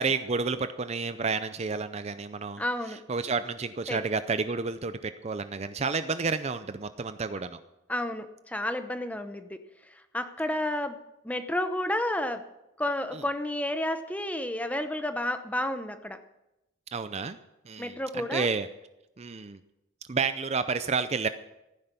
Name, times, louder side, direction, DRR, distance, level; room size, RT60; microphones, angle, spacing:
voice 1, 0.0-2.6 3.1-7.6 16.9-17.4 17.7-18.7 19.2-19.6 20.1-21.3, right 4 dB, 30° right, 11 dB, 0.5 m, -30 dB
voice 2, 2.6-3.0 3.9-4.0 7.9-9.6 10.1-12.4 12.8-16.2 17.8-18.5, left 1 dB, 5° left, 9 dB, 0.8 m, -31 dB
15.0 x 10.0 x 6.8 m, 0.92 s
head